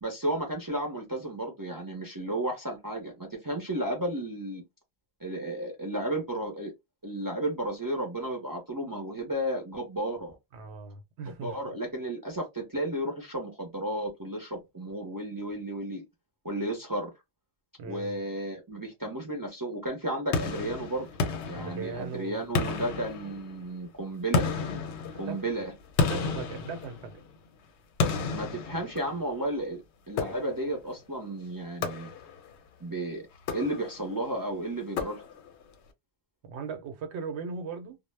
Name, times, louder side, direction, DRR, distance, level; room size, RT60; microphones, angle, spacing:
voice 1, 0.0-4.6 5.2-6.7 7.0-10.3 11.3-16.0 16.4-17.1 17.8-21.1 21.4-24.5 25.2-25.7 28.3-29.8 30.1-32.1 32.8-33.2 33.5-35.2, right 1 dB, 25° right, 0.5 m, -33 dB
voice 2, 10.5-11.5 17.8-18.1 21.5-22.8 25.3-25.5 26.1-27.1 36.4-38.0, right 5 dB, 85° right, 0.9 m, -38 dB
sound 1, 20.3-22.1 22.5-23.7 24.3-27.4 28.0-29.4 30.2-30.8 31.8-32.5 33.3-34.1 35.0-35.6, left 4 dB, 90° left, 0.9 m, -32 dB
2.0 x 2.0 x 3.1 m
omnidirectional pair, 1.1 m